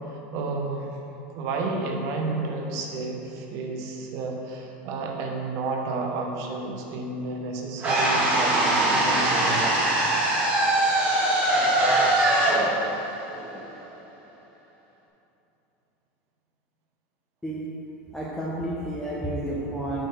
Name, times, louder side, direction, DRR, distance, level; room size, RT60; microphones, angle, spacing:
voice 1, 0.3-0.9 1.3-9.7, right 3 dB, 50° right, 1 dB, 1.0 m, -31 dB
sound 1, 7.8-13.9, right 1 dB, 25° right, 1.6 m, -22 dB
voice 2, 18.1-20.1, right 1 dB, 5° left, -7 dB, 0.8 m, -31 dB
6.2 x 4.6 x 6.4 m, 2.9 s
supercardioid pair, 160°, 6 cm